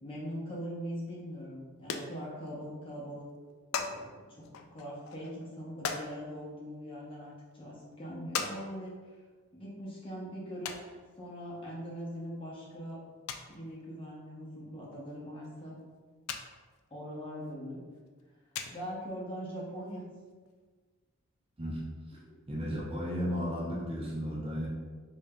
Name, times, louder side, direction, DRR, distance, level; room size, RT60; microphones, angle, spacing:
voice 1, 0.0-3.3 3.7-4.4 4.7-8.9 9.5-13.0 13.5-15.8 16.9-17.8 18.7-20.1 22.2-22.4, equal, 25° left, -5 dB, 0.7 m, -41 dB
sound 1, 1.4-1.5 1.8-2.7 3.0-3.1 3.3-4.0 4.4-6.1 6.9-7.0 7.5-7.6 8.3-8.6 8.8-8.9 10.7-10.8 12.0-12.2 12.5-12.6 12.9-13.0 13.3-13.5 14.9-15.0 15.4-15.5 16.3-16.5 16.7-16.8 18.1-18.2 18.5-19.0 19.9-20.0 20.2-20.3 20.5-20.6, left 6 dB, 65° left, 0.3 m, -37 dB
voice 2, 22.5-24.7, equal, 25° right, -5 dB, 0.6 m, -34 dB
5.2 x 2.6 x 2.2 m, 1.4 s
head